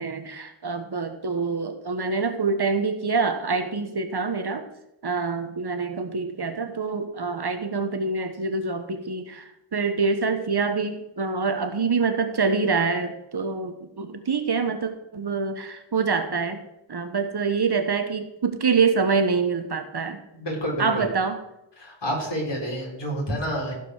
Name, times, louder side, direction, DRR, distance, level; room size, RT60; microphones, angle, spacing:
voice 1, 0.0-4.7 5.0-16.6 16.9-20.2 20.8-21.4, right 4 dB, 50° right, 7 dB, 1.4 m, -26 dB
voice 2, 20.3-21.1 21.8-23.8, equal, 55° left, -1 dB, 4.3 m, -29 dB
15.5 x 5.3 x 6.5 m, 0.87 s
wide cardioid pair, 80°, 49 cm